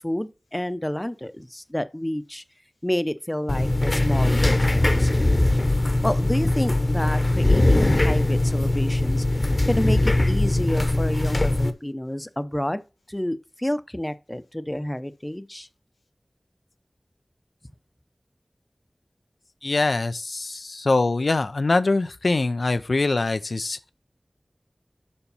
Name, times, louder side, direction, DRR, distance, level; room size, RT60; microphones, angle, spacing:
voice 1, 0.0-2.4 2.8-5.6 6.0-9.4 9.7-12.8 13.1-15.7, left 1 dB, 15° left, 0.6 m, -29 dB
sound 1, 3.5-11.7, left 2 dB, 40° left, 0.9 m, -21 dB
voice 2, 19.6-23.9, left 3 dB, 90° left, 0.4 m, -23 dB
7.2 x 5.3 x 5.4 m
wide cardioid pair, 60°, 0 cm